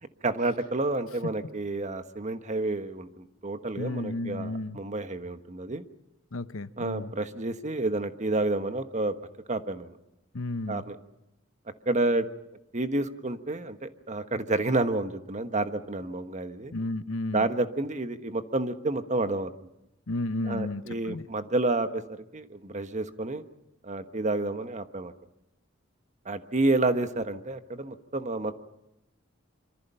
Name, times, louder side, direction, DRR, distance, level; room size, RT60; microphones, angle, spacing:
voice 1, 0.2-5.8 6.8-9.1 9.5-9.9 10.7-11.0 11.9-12.3 12.7-16.7 17.3-19.5 20.4-23.4 23.8-25.1 26.2-28.5, right 2 dB, 35° right, 9 dB, 1.3 m, -29 dB
voice 2, 3.8-4.8 6.3-7.1 10.3-10.8 16.7-17.5 20.1-21.3, left 2 dB, 80° left, 12 dB, 1.0 m, -33 dB
25.5 x 25.0 x 5.7 m, 0.88 s
head